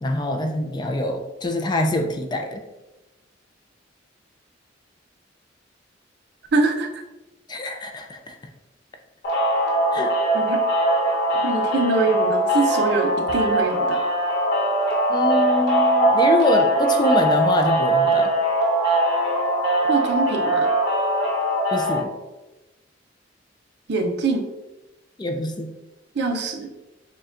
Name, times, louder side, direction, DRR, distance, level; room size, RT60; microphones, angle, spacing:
voice 1, 0.0-2.6 7.5-8.4 9.9-10.2 15.1-18.3 21.7-22.1 25.2-25.7, left 1 dB, 25° left, 4 dB, 0.4 m, -24 dB
voice 2, 6.5-6.9 10.3-10.6 11.4-14.0 19.9-20.7 23.9-24.5 26.1-26.7, right 3 dB, 60° right, 3 dB, 0.6 m, -23 dB
sound 1, 9.2-22.0, right 1 dB, 65° left, 1.0 m, -21 dB
6.7 x 2.2 x 2.5 m, 1.0 s
head